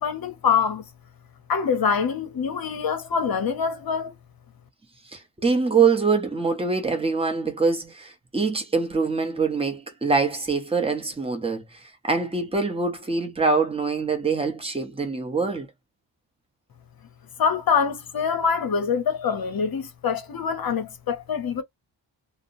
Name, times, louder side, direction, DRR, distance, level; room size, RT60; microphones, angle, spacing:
voice 1, 0.0-0.8 1.5-4.2 17.4-21.6, left 6 dB, 50° left, 0.7 m, -25 dB
voice 2, 5.1-15.7, right 4 dB, 10° right, 0.7 m, -24 dB
2.7 x 2.0 x 2.5 m
wide cardioid pair, 175°, 48 cm